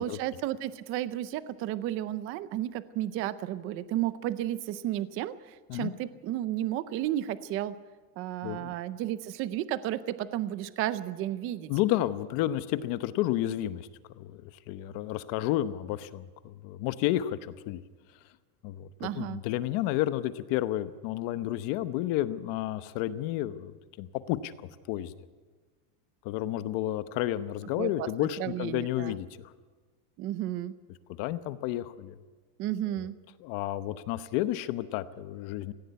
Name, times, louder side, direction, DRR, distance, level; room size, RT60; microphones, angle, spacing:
voice 1, 0.0-7.8 8.2-11.7 19.0-19.4 27.8-29.2 30.2-30.8 32.6-33.2, right 13 dB, 30° right, 15 dB, 0.5 m, -33 dB
voice 2, 8.4-8.7 11.7-13.9 14.2-17.8 18.6-24.5 24.9-25.1 26.2-29.5 31.2-32.2 33.4-35.7, left 14 dB, 45° left, 13 dB, 0.9 m, -31 dB
17.5 x 16.0 x 9.5 m, 1.4 s
supercardioid pair, 165°, 47 cm